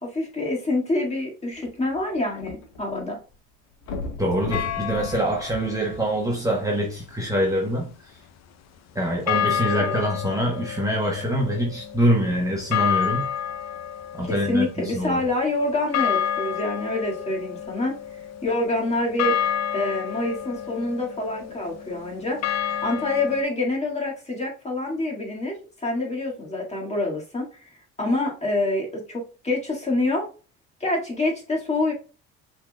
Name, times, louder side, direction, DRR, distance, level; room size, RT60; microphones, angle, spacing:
voice 1, 0.0-3.2 9.8-10.0 14.2-18.0 18.4-19.4 19.7-22.4 22.8-27.6 28.0-30.3 30.8-31.9, left 2 dB, 20° left, 2.0 m, -26 dB
sound 1, 1.5-3.0 3.3-3.4 3.8-6.4 7.1-7.2, left 3 dB, 75° left, 1.5 m, -36 dB
voice 2, 4.2-8.2 8.9-13.3 14.1-15.2, equal, 10° right, 1.2 m, -25 dB
sound 2, 4.5-5.6 9.3-23.4, left 9 dB, 55° left, 0.7 m, -30 dB
5.7 x 3.9 x 2.3 m
supercardioid pair, 85°, 33 cm